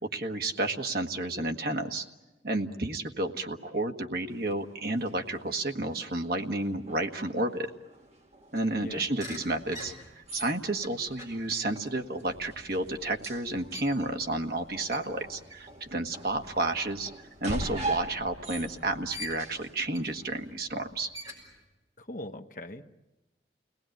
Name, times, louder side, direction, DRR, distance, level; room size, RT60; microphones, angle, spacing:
voice 1, 0.0-2.0 2.4-7.7 8.5-17.1 17.4-21.1, right 2 dB, 55° right, 4 dB, 1.5 m, -31 dB
sound 1, 4.3-20.5, right 2 dB, 35° right, 2.0 m, -43 dB
sound 2, 8.5-18.6 19.1-21.6, left 1 dB, 20° right, 6.3 m, -48 dB
voice 2, 8.8-9.1 22.0-22.9, left 1 dB, 45° left, 4 dB, 1.2 m, -41 dB
29.5 x 19.5 x 9.2 m, 1.1 s
head